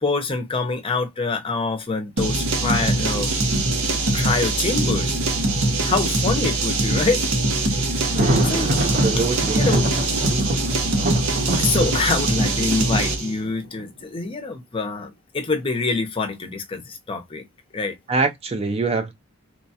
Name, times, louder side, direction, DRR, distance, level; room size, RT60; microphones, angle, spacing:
voice 1, 0.0-3.3 4.1-5.2 5.8-7.2 7.7-8.7 9.5-9.9 11.6-17.5 17.7-18.0, left 3 dB, 25° left, 0.5 m, -25 dB
sound 1, 2.2-13.3, right 2 dB, 90° right, 0.8 m, -22 dB
Thunder, 8.0-13.8, right 1 dB, 45° right, 0.8 m, -26 dB
voice 2, 8.1-9.8 18.1-19.1, right 3 dB, 30° right, 0.3 m, -25 dB
3.0 x 2.2 x 2.6 m
head